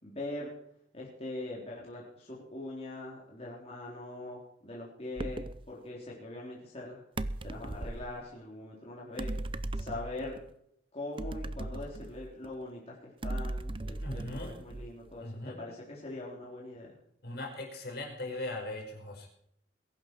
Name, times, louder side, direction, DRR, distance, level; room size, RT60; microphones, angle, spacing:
voice 1, 0.0-0.5 0.9-7.0 7.4-9.3 9.7-10.4 10.9-16.9, left 2 dB, 35° left, -4 dB, 3.9 m, -42 dB
sound 1, 5.2-5.6 7.2-8.1 9.2-10.4 11.2-12.5 13.2-15.1, right 2 dB, 30° right, 0.6 m, -37 dB
voice 2, 14.0-14.5 15.2-15.6 17.2-19.3, left 2 dB, 55° left, 1 dB, 5.2 m, -39 dB
21.5 x 11.0 x 4.8 m, 0.72 s
head